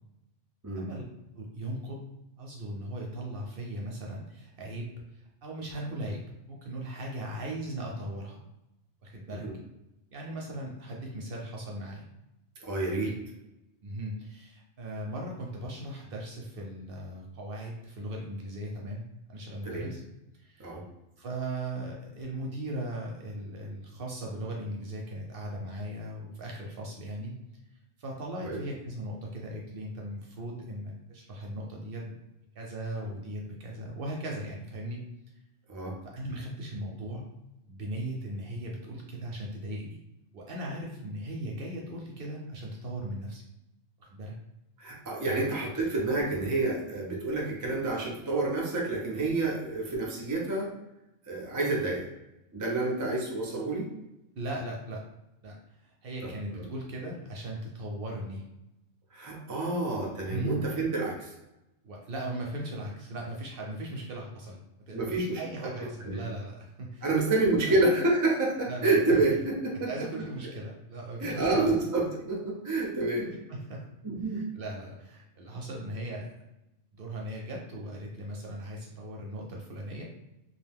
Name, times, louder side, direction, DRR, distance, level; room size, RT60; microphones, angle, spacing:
voice 1, 1.3-2.0 2.4-8.4 9.0-9.4 10.1-12.0 12.9-13.1 13.8-19.0 19.3-20.0 20.4-20.8 21.2-27.3 28.0-32.2 32.5-35.0 36.0-37.3 37.7-40.0 40.3-43.4 44.0-44.3 45.3-45.5 54.4-55.0 55.4-58.5 60.2-60.6 61.8-64.6 64.9-67.1 67.6-67.7 68.7-69.0 69.9-71.7 73.1-73.2 73.5-73.8 74.3-76.3 76.9-80.0, right 1 dB, 60° right, -1 dB, 0.6 m, -38 dB
voice 2, 12.6-13.1 19.6-19.9 20.6-20.8 28.4-28.6 35.7-36.0 44.8-50.7 51.3-52.1 52.5-53.9 56.2-56.3 59.1-61.3 64.9-66.2 67.0-69.9 71.2-73.3 74.0-74.4, right 2 dB, 30° right, -2 dB, 0.3 m, -28 dB
2.4 x 2.2 x 3.4 m, 0.94 s
omnidirectional pair, 1.2 m